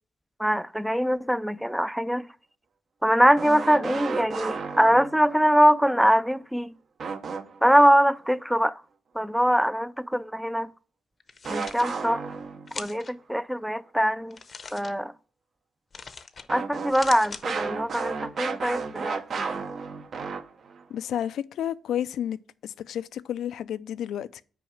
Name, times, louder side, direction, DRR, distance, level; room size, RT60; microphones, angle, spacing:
voice 1, 0.4-2.3 3.0-6.7 7.6-8.8 9.1-10.7 11.5-12.2 12.8-14.4 14.7-15.1 16.5-19.7, equal, ahead, 0.3 m, -23 dB
sound 1, 3.4-5.4 7.0-7.9 11.5-12.9 16.5-20.8, right 5 dB, 55° right, 0.8 m, -33 dB
sound 2, 11.2-11.9 12.7-13.1 14.3-14.9 15.9-16.5 16.8-17.4, left 4 dB, 35° left, 0.7 m, -40 dB
voice 2, 20.9-24.4, left 10 dB, 80° left, 0.4 m, -31 dB
6.1 x 4.7 x 5.7 m
cardioid pair, 120°, 0 cm